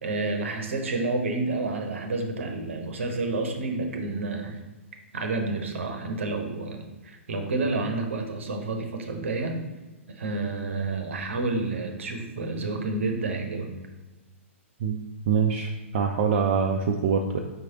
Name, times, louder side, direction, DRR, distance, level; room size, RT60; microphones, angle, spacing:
voice 1, 0.0-4.6 5.1-9.5 10.1-13.7, right 3 dB, 65° right, 5 dB, 0.8 m, -29 dB
voice 2, 15.3-17.4, right 6 dB, 45° right, 2 dB, 0.4 m, -24 dB
4.9 x 3.1 x 2.9 m, 1.2 s
figure-of-eight pair, 115°, 7 cm